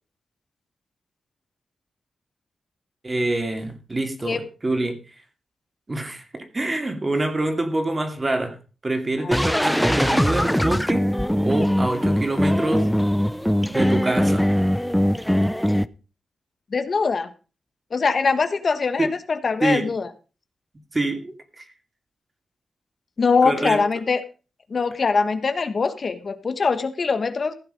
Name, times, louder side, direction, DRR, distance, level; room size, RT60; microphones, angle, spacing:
voice 1, 3.0-5.0 5.9-8.6 8.8-11.1 11.4-12.9 13.6-14.5 19.0-19.1 19.6-19.9 20.9-21.6 23.4-23.8, right 2 dB, 25° right, 2.6 m, -25 dB
voice 2, 9.2-9.6 16.7-17.3 17.9-20.1 23.2-24.2 24.7-27.5, left 4 dB, 50° left, 1.2 m, -22 dB
sound 1, 9.3-15.8, equal, ahead, 0.6 m, -21 dB
15.5 x 8.1 x 5.2 m
wide cardioid pair, 105°, 0 cm